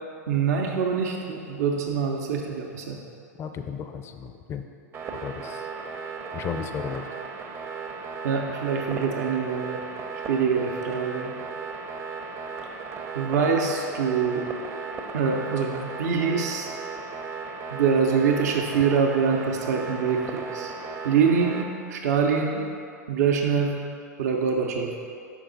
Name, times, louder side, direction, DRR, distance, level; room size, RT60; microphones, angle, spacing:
voice 1, 0.3-3.0 8.2-9.8 10.3-11.3 13.1-14.4 15.1-16.7 17.7-20.7 21.0-22.6 23.1-23.7 24.2-24.9, right 6 dB, 70° right, 1 dB, 0.6 m, -24 dB
voice 2, 3.4-4.6 5.1-5.7 6.3-7.0, left 7 dB, 30° left, 7 dB, 0.4 m, -34 dB
sound 1, 4.9-21.6, right 4 dB, 30° right, 0.6 m, -36 dB
5.9 x 4.6 x 3.9 m, 2.5 s
hypercardioid pair, 100°, 9 cm